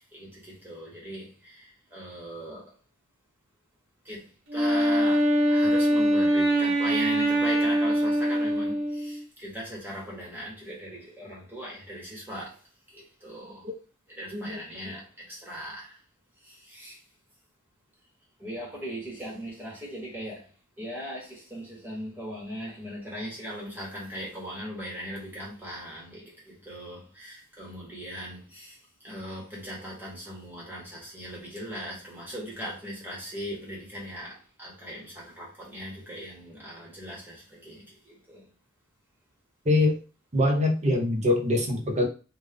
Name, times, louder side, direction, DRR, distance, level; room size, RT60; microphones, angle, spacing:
voice 1, 0.0-2.7 4.0-12.6 12.9-13.7 14.1-16.0 16.4-17.0 18.4-20.5 20.8-38.5, equal, 10° right, 1.5 m, -39 dB
Wind instrument woodwind instrument, 4.5-9.2, right 1 dB, 60° right, 0.9 m, -23 dB
voice 2, 40.3-42.1, left 1 dB, 35° right, 0.9 m, -23 dB
3.5 x 2.6 x 3.5 m
head